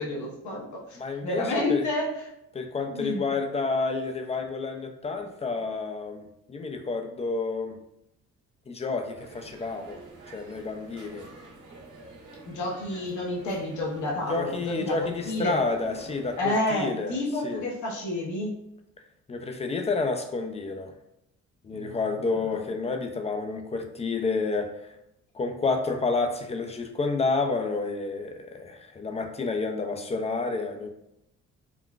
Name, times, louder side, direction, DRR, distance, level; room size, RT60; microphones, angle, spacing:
voice 1, 0.0-2.3 2.8-3.3 12.5-15.6 16.4-18.6 21.7-22.0, left 1 dB, 75° left, -2 dB, 0.9 m, -30 dB
voice 2, 1.0-1.8 2.5-6.2 6.5-7.7 8.7-10.0 10.3-11.3 14.3-17.2 17.4-17.6 19.3-20.9 21.6-24.9 25.3-30.9, left 3 dB, 20° left, 5 dB, 0.4 m, -29 dB
sound 1, 9.1-16.5, right 2 dB, 70° right, 1.4 m, -48 dB
3.8 x 2.2 x 2.3 m, 0.82 s
cardioid pair, 90°, 30 cm